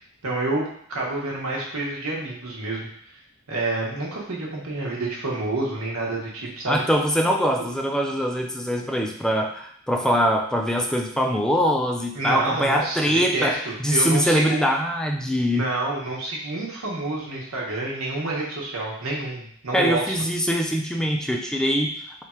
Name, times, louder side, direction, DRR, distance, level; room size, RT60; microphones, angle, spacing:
voice 1, 0.2-2.9 3.5-6.8 7.6-7.7 12.1-13.0 13.3-14.6 15.5-20.1, right 2 dB, 80° right, -3 dB, 1.1 m, -28 dB
voice 2, 6.7-15.7 19.7-22.2, equal, 5° left, 2 dB, 0.3 m, -23 dB
3.4 x 2.4 x 4.3 m, 0.64 s
head